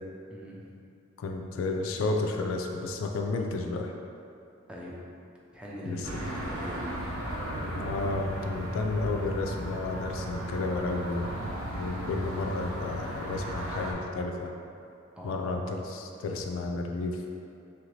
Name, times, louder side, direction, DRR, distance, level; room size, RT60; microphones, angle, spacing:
voice 1, 0.3-0.7 4.7-5.1 5.5-6.9 15.2-15.5, equal, 5° right, -5 dB, 0.4 m, -42 dB
voice 2, 1.2-3.9 5.9-6.2 7.7-11.3 11.7-14.5 15.2-17.2, left 3 dB, 75° left, 2 dB, 0.3 m, -32 dB
sound 1, 6.0-13.9, right 1 dB, 80° right, 0.5 m, -35 dB
2.9 x 2.7 x 3.0 m, 2.6 s
head